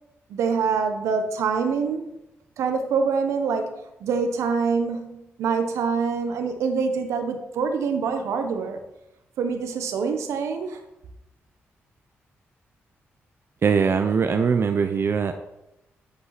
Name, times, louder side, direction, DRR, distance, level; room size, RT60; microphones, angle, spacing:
voice 1, 0.3-2.0 2.6-8.8 9.4-10.8, right 5 dB, 85° right, 6 dB, 1.3 m, -25 dB
voice 2, 13.6-15.3, right 6 dB, 55° right, 7 dB, 0.8 m, -21 dB
14.0 x 5.5 x 4.2 m, 0.90 s
cardioid pair, 60°, 5 cm